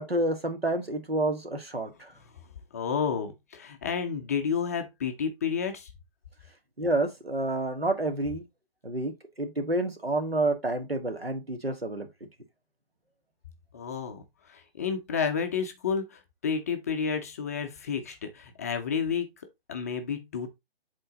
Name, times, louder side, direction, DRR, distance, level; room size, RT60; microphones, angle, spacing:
voice 1, 0.0-2.1 6.8-8.4 8.8-12.1, right 2 dB, 90° right, 1.8 m, -29 dB
voice 2, 2.7-5.9 13.7-19.3 19.7-20.6, left 6 dB, 15° left, 0.5 m, -31 dB
7.9 x 3.8 x 3.9 m
figure-of-eight pair, 140°, 29 cm